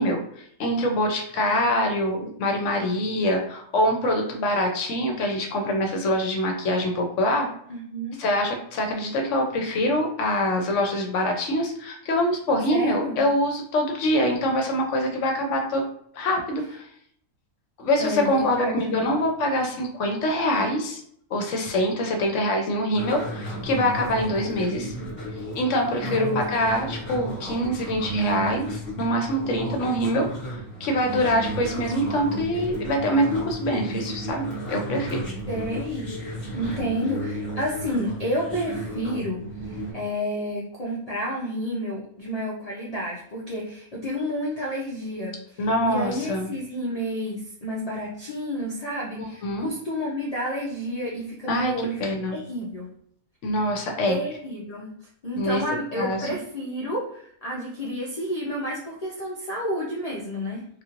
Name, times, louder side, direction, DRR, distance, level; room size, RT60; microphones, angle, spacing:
voice 1, 0.0-7.5 8.2-15.8 16.1-16.9 17.8-21.0 21.3-24.9 25.5-35.3 45.6-46.5 49.2-49.7 51.5-51.7 52.0-52.4 53.4-54.2 55.4-55.6 56.0-56.3, equal, 65° left, 3 dB, 0.9 m, -24 dB
voice 2, 7.7-8.2 12.7-13.2 18.0-19.1 26.0-26.7 35.5-52.0 52.3-52.9 54.1-54.9 55.2-60.6, equal, 45° left, -4 dB, 0.5 m, -30 dB
sound 1, 22.9-39.9, right 1 dB, 10° left, 1.3 m, -34 dB
3.5 x 3.0 x 2.5 m, 0.66 s
omnidirectional pair, 1.5 m